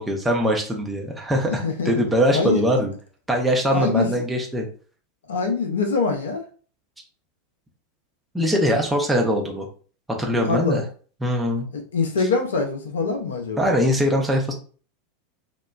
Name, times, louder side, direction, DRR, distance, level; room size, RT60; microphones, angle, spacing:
voice 1, 0.0-2.9 3.3-4.7 8.3-9.7 10.1-10.8 11.2-11.7 13.6-14.5, equal, 10° right, 0 dB, 0.7 m, -22 dB
voice 2, 1.5-2.0 2.3-2.6 3.7-4.1 5.3-6.4 10.4-10.8 11.7-13.7, left 4 dB, 70° left, 4 dB, 0.5 m, -24 dB
2.8 x 2.2 x 2.2 m, 0.41 s
figure-of-eight pair, 85°, 0 cm